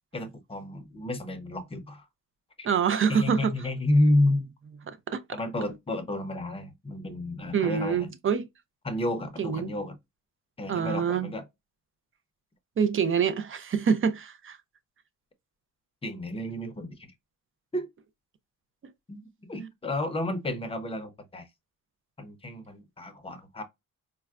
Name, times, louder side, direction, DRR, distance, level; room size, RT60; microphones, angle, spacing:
voice 1, 0.1-2.0 2.6-2.7 3.1-4.5 5.3-8.1 8.8-10.0 10.6-11.4 16.0-17.1 17.7-17.9 19.1-19.2 19.5-21.5 22.2-23.6, left 1 dB, 15° left, 0.6 m, -30 dB
voice 2, 2.6-3.5 5.1-5.2 7.5-8.5 9.4-9.7 10.7-11.3 12.8-14.6, right 7 dB, 40° right, 0.5 m, -26 dB
4.4 x 2.1 x 2.3 m
wide cardioid pair, 140°, 33 cm